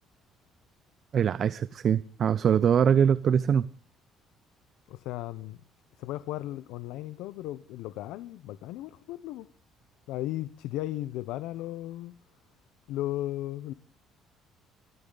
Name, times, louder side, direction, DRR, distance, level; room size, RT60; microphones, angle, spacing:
voice 1, 1.1-3.7, right 8 dB, 40° right, 0.7 m, -23 dB
voice 2, 4.9-5.6 6.0-9.5 10.1-12.1 12.9-13.7, left 15 dB, 85° left, 0.9 m, -35 dB
23.5 x 14.0 x 4.1 m
cardioid pair, 150°, 0 cm